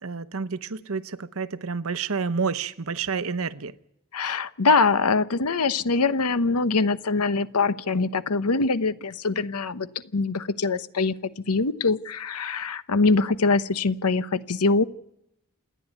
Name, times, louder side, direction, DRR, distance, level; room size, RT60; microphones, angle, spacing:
voice 1, 0.0-3.7, right 5 dB, 65° right, 0.9 m, -29 dB
voice 2, 4.1-11.1 11.5-14.8, left 3 dB, 90° left, 1.0 m, -23 dB
28.0 x 10.0 x 9.3 m
head